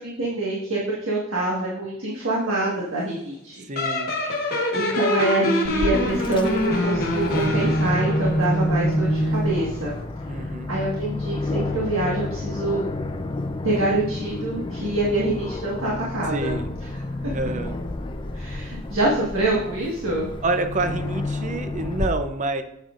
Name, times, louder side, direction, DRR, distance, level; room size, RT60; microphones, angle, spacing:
voice 1, 0.0-3.6 4.7-9.9 10.3-12.9 13.6-16.5 18.3-20.3, right 2 dB, 65° right, -5 dB, 1.6 m, -25 dB
voice 2, 3.7-4.1 10.3-10.7 16.3-16.7 17.3-17.8 20.4-22.6, right 2 dB, 35° right, 8 dB, 0.6 m, -27 dB
sound 1, 3.8-9.8, equal, 45° left, 1.4 m, -23 dB
Aircraft, 5.6-22.1, left 2 dB, 25° left, 0.4 m, -31 dB
8.9 x 7.3 x 2.5 m, 0.80 s
head